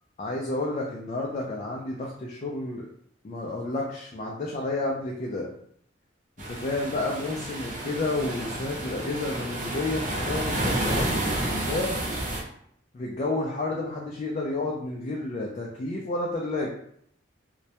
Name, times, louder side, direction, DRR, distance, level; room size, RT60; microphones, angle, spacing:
voice 1, 0.2-2.9 3.2-5.5 6.5-11.9 12.9-16.7, left 2 dB, 40° left, -2 dB, 0.3 m, -31 dB
sound 1, 6.4-12.4, right 1 dB, 45° right, 0.6 m, -30 dB
2.2 x 2.1 x 2.7 m, 0.68 s
head